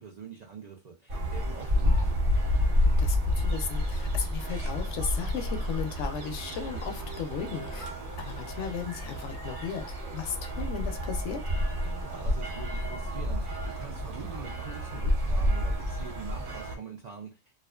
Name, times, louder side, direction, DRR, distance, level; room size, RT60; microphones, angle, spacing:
voice 1, 0.0-2.4 11.8-17.4, right 6 dB, 85° right, 0.3 m, -44 dB
sound 1, 1.1-16.8, left 1 dB, 45° right, 0.8 m, -29 dB
voice 2, 3.0-11.4, left 7 dB, 70° left, 0.8 m, -36 dB
2.4 x 2.4 x 2.2 m
omnidirectional pair, 1.4 m